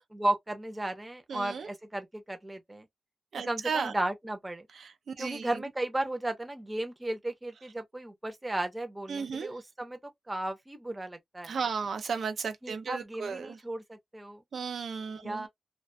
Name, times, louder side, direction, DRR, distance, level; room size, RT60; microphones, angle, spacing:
voice 1, 0.1-2.9 3.3-4.7 5.2-11.6 12.6-14.4 15.2-15.5, right 1 dB, 15° right, 0.6 m, -35 dB
voice 2, 1.3-1.7 3.3-3.9 5.2-5.5 9.1-9.5 11.5-13.6 14.5-15.5, right 5 dB, 70° right, 0.5 m, -34 dB
2.4 x 2.2 x 2.5 m
wide cardioid pair, 145°, 0 cm